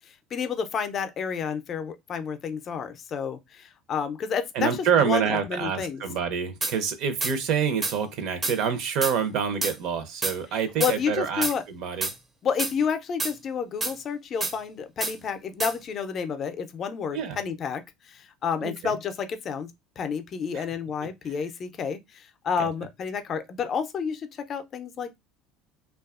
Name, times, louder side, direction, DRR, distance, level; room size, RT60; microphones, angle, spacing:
voice 1, 0.1-6.0 10.8-11.6 12.4-25.2, left 6 dB, 40° left, 0.4 m, -30 dB
voice 2, 4.5-12.1 17.1-17.4 18.6-18.9 20.5-20.6 21.3-21.4 22.6-22.7, right 7 dB, 60° right, 0.6 m, -27 dB
sound 1, 6.6-6.8 7.2-7.3 7.8-8.0 8.4-8.6 9.0-9.2 9.6-9.7 10.2-10.4 10.8-10.9 11.4-11.6 12.0-12.1 12.6-12.7 13.2-13.3 13.8-13.9 14.4-14.5 15.0-15.1 15.6-15.7, right 3 dB, 20° right, 0.5 m, -28 dB
2.6 x 2.3 x 2.4 m
supercardioid pair, 115°, 0 cm